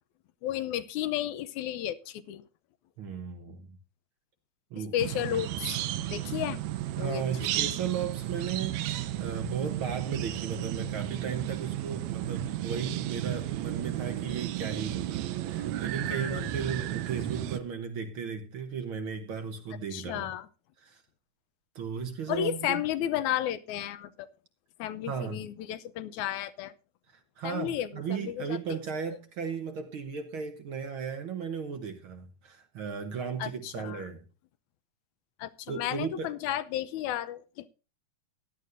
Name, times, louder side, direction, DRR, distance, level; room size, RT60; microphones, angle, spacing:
voice 1, 0.4-2.4 4.8-5.8 6.1-6.6 6.9-7.7 16.1-16.5 19.9-20.5 22.3-24.1 24.8-26.7 27.4-28.6 33.4-34.0 35.4-37.7, left 12 dB, 85° left, 2.1 m, -33 dB
voice 2, 3.0-3.8 4.7-4.9 7.0-20.3 20.8-21.0 21.8-22.8 25.1-25.4 27.4-34.2 35.7-36.4, right 6 dB, 55° right, 1.6 m, -36 dB
sound 1, 5.0-17.6, right 13 dB, 75° right, 1.9 m, -33 dB
16.0 x 11.0 x 2.6 m
omnidirectional pair, 3.3 m